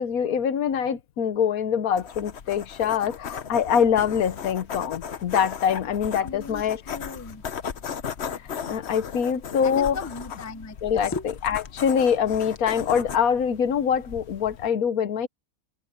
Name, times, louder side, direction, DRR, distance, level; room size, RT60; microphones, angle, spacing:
voice 1, 0.0-6.8 8.4-10.0 10.8-11.1 11.4-15.3, left 7 dB, 80° left, 1.4 m, -24 dB
sound 1, 2.0-14.7, left 7 dB, 50° left, 1.1 m, -37 dB
voice 2, 6.2-7.4 9.6-11.3, left 4 dB, 15° left, 0.6 m, -36 dB
omnidirectional pair, 1.5 m